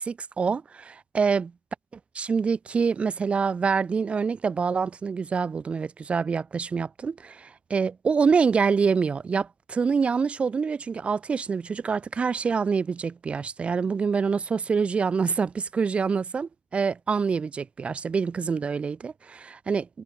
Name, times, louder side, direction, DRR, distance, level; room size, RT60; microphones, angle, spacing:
voice 1, 0.0-1.5 2.2-19.9, right 5 dB, 30° right, 1.6 m, -26 dB
cardioid pair, 145°, 4 cm